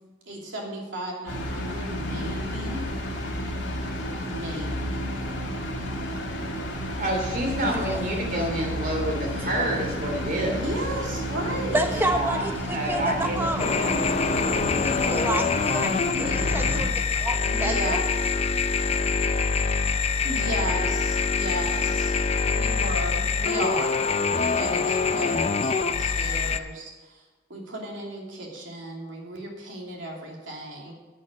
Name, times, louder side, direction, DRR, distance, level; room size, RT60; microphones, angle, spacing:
voice 1, 0.3-2.9 4.3-5.0 10.5-11.8 16.1-16.4 17.5-18.0 20.2-22.3 22.5-24.0 24.3-27.2 27.5-30.9, right 1 dB, 75° right, -1 dB, 2.8 m, -34 dB
sound 1, 1.3-16.9, equal, 75° left, 2.6 m, -31 dB
voice 2, 7.0-10.7 12.0-13.9, right 1 dB, 50° right, 1 dB, 3.0 m, -28 dB
voice 3, 11.7-13.7 14.8-15.9 16.2-18.1, right 1 dB, 10° right, 4 dB, 1.0 m, -29 dB
sound 2, 13.6-26.6, left 5 dB, 35° left, 0.5 m, -25 dB
11.5 x 6.4 x 7.8 m, 1.2 s
head